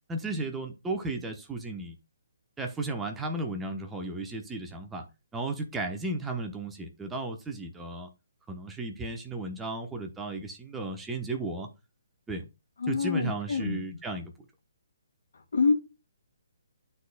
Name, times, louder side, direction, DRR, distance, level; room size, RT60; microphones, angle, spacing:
voice 1, 0.1-2.0 2.6-5.0 5.3-8.1 8.5-11.7 12.3-12.5 12.9-14.3, right 2 dB, 10° right, 1.0 m, -34 dB
voice 2, 12.8-13.8 15.5-15.7, left 5 dB, 65° left, 1.9 m, -26 dB
11.5 x 4.1 x 2.3 m
figure-of-eight pair, 140°, 0 cm